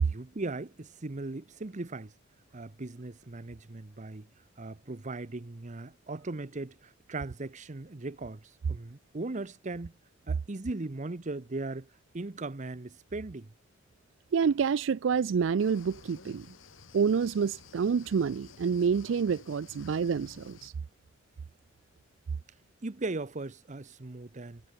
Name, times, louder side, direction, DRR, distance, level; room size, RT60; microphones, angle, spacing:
voice 1, 0.0-2.1 2.5-4.3 4.6-9.9 10.3-13.5 22.8-24.6, right 2 dB, 40° right, 0.9 m, -38 dB
voice 2, 14.3-16.5 16.9-20.7, right 6 dB, 70° right, 0.4 m, -28 dB
sound 1, 15.6-20.7, left 4 dB, 90° left, 1.3 m, -53 dB
head